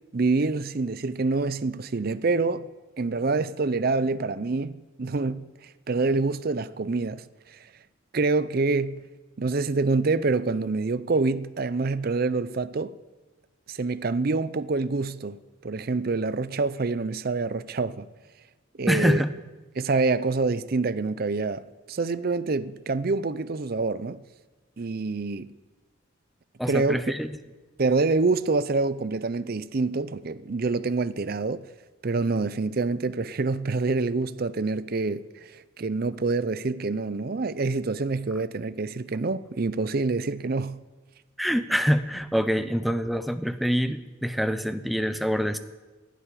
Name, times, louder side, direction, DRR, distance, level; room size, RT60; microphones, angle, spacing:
voice 1, 0.1-2.7 3.0-5.4 5.9-7.6 8.1-9.0 9.4-12.9 13.7-18.1 18.8-19.2 19.8-24.2 24.8-25.5 26.7-27.1 27.8-31.7 32.0-40.8, right 3 dB, 45° right, 0.5 m, -26 dB
voice 2, 18.9-19.3 26.6-27.3 41.4-45.6, equal, ahead, 0.7 m, -25 dB
12.0 x 11.5 x 9.8 m
head